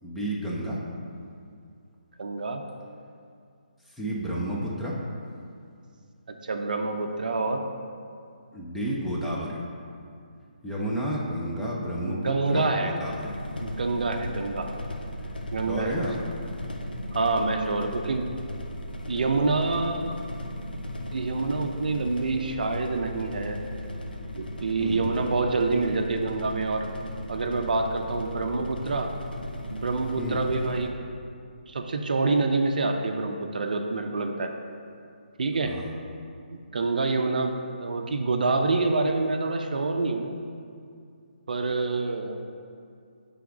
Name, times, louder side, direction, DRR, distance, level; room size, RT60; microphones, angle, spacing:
voice 1, 0.0-0.8 4.0-4.9 8.5-9.6 10.6-13.3 15.7-16.1 24.8-25.1 30.2-30.4 35.6-35.9, right 1 dB, ahead, -6 dB, 0.6 m, -31 dB
voice 2, 2.2-2.6 6.3-7.6 11.6-11.7 12.0-12.9 13.6-14.7 15.5-16.0 17.1-18.3 19.1-20.2 21.1-23.6 24.4-26.9 27.3-29.1 29.7-30.9 31.7-34.5 35.4-35.7 36.5-37.5 37.8-40.4 41.5-42.4, right 3 dB, 65° right, 5 dB, 0.5 m, -27 dB
sound 1, 13.0-30.9, equal, 85° left, 0.7 m, -37 dB
5.7 x 3.5 x 4.9 m, 2.4 s
figure-of-eight pair, 145°, 5 cm